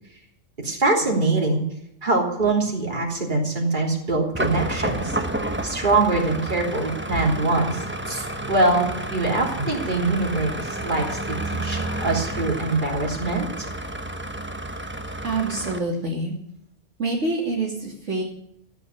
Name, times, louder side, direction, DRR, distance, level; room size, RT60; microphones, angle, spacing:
voice 1, 0.6-1.6 2.0-5.2 5.6-11.4 11.6-13.7, right 2 dB, 35° right, -1 dB, 3.7 m, -23 dB
sound 1, 4.3-15.8, right 1 dB, 10° right, 1.0 m, -30 dB
voice 2, 15.2-16.4 17.0-18.2, right 2 dB, 60° right, -3 dB, 3.0 m, -26 dB
14.5 x 8.4 x 9.5 m, 0.77 s
omnidirectional pair, 1.3 m